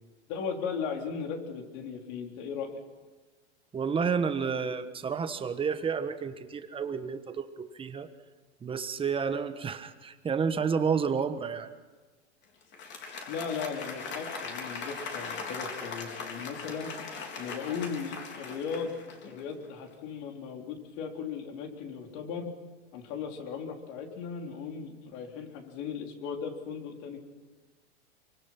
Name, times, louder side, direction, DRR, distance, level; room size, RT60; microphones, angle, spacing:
voice 1, 0.3-2.8 13.3-16.9 17.4-22.5 22.9-27.2, left 6 dB, 50° left, 3 dB, 4.0 m, -37 dB
voice 2, 3.7-8.1 8.6-11.7, right 6 dB, 15° right, 9 dB, 1.3 m, -30 dB
Applause, 12.6-19.6, left 4 dB, 30° left, 3.7 m, -40 dB
24.5 x 24.5 x 6.1 m, 1.3 s
supercardioid pair, 135°, 33 cm